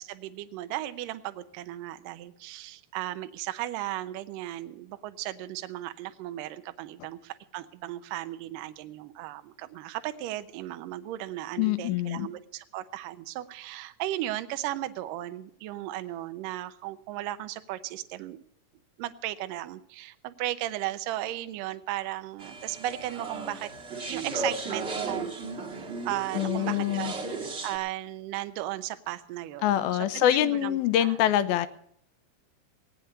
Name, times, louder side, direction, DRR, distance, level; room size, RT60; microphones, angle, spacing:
voice 1, 0.0-18.4 19.0-23.7 24.1-25.4 26.1-27.1 27.6-29.8 30.1-31.2, right 14 dB, 75° right, 11 dB, 2.1 m, -36 dB
voice 2, 11.6-12.3 26.3-27.1 29.6-31.7, left 12 dB, 80° left, 13 dB, 2.4 m, -25 dB
sound 1, 22.4-27.8, right 3 dB, 30° right, 1.3 m, -35 dB
17.5 x 9.8 x 6.7 m, 0.69 s
omnidirectional pair, 4.6 m